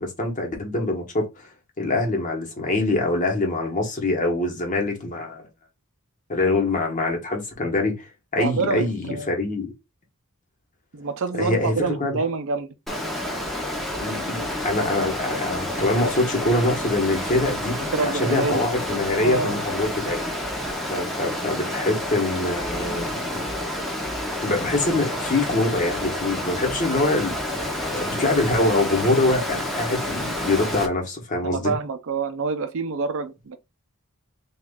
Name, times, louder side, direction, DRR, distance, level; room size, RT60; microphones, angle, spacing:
voice 1, 0.0-1.5 1.8-5.5 6.3-9.7 11.4-12.2 14.0-20.2 20.9-23.4 24.4-31.7, left 2 dB, 35° left, 1.0 m, -24 dB
voice 2, 8.4-9.3 10.9-12.7 17.9-18.7 19.2-19.6 31.4-33.6, right 4 dB, 65° right, 0.5 m, -27 dB
Water, 12.9-30.9, left 1 dB, ahead, 0.6 m, -29 dB
3.0 x 2.4 x 3.5 m
head